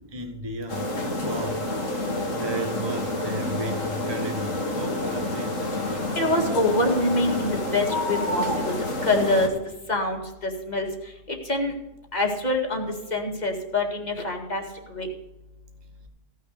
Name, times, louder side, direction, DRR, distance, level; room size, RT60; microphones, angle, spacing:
voice 1, 0.1-2.0 2.3-5.7, right 1 dB, 20° right, 4 dB, 1.3 m, -34 dB
sound 1, 0.7-9.5, left 1 dB, 80° left, 2.3 m, -28 dB
voice 2, 6.2-8.7 9.0-9.5 9.9-10.2 10.7-10.9 11.3-11.7 12.1-12.8 13.1-14.6 14.9-15.1, left 2 dB, 35° left, 1 dB, 2.1 m, -25 dB
16.5 x 6.6 x 6.6 m, 0.95 s
omnidirectional pair, 1.3 m